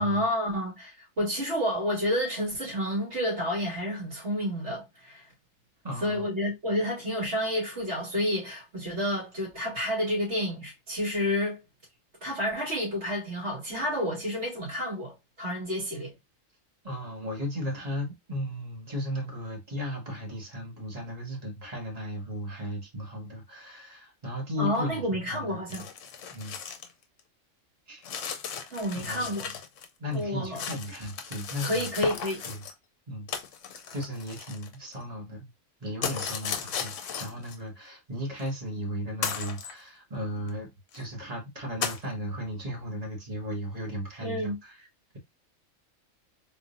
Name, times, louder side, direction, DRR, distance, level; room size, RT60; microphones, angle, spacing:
voice 1, 0.0-5.2 6.0-11.6 12.2-16.1 24.6-25.8 28.7-29.5 30.1-30.6 31.6-32.4 44.2-44.5, equal, 55° right, 2.3 m, -30 dB
voice 2, 5.8-6.3 16.8-25.6 26.3-26.6 27.9-28.0 28.9-29.2 30.0-31.9 32.5-32.6 33.1-33.3 33.9-35.5 35.8-40.7 40.9-44.9, equal, 30° right, 1.6 m, -35 dB
sound 1, 25.7-26.9 27.2-27.3 28.0-29.9 30.1-32.7 33.3-35.0 36.0-37.5 38.4-38.5 39.2-39.7 40.5-40.6 40.9-41.0 41.8-42.0, left 7 dB, 75° left, 1.0 m, -36 dB
3.8 x 3.3 x 2.6 m
omnidirectional pair, 1.4 m